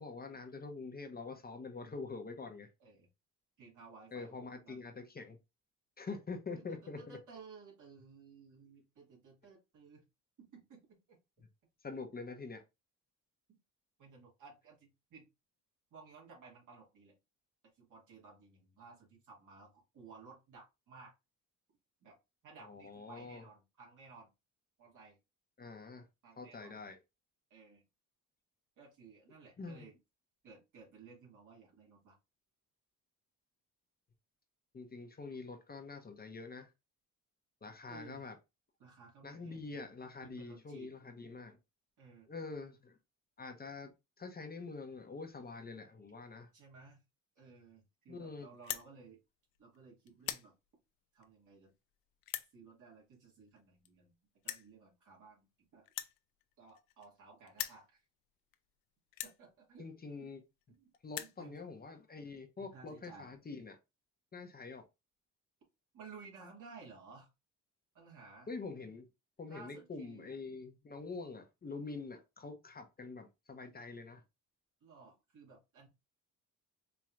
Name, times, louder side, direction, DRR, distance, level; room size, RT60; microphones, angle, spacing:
voice 1, 0.0-2.7 4.1-5.4 6.0-7.2 11.8-12.6 22.6-23.4 25.6-26.1 26.4-27.0 29.6-29.9 34.7-36.7 37.6-38.3 39.2-41.6 42.3-43.0 43.4-43.9 44.2-46.5 48.1-48.5 59.8-60.4 61.0-63.8 64.3-64.8 68.5-69.1 69.4-74.2, left 4 dB, 25° left, 0.9 m, -45 dB
voice 2, 3.6-4.9 6.6-10.0 10.4-11.2 14.0-15.3 15.9-17.1 17.7-21.1 22.0-22.2 22.4-24.3 24.8-25.2 26.2-26.8 27.5-27.9 28.8-30.0 30.4-32.2 37.9-38.3 38.8-39.9 40.2-41.0 42.0-42.3 46.5-47.0 47.4-49.2 49.6-50.5 51.1-51.7 52.5-54.2 54.4-55.9 56.6-58.0 59.2-59.9 60.2-60.3 60.8-60.9 61.2-61.6 62.6-63.3 65.9-67.3 67.9-68.5 69.5-70.3 74.8-75.9, right 4 dB, 65° right, 2.3 m, -56 dB
sound 1, 48.5-48.9 49.5-49.8 50.1-50.5 51.2-51.3 52.2-52.5 53.6-53.7 53.8-53.9 54.4-54.7 55.9-57.2 57.5-57.8 58.5-58.6 59.1-59.4 60.3-60.4 60.6-60.7 60.9-61.4, left 13 dB, 85° left, 0.6 m, -41 dB
4.5 x 3.0 x 2.5 m
cardioid pair, 95°, 34 cm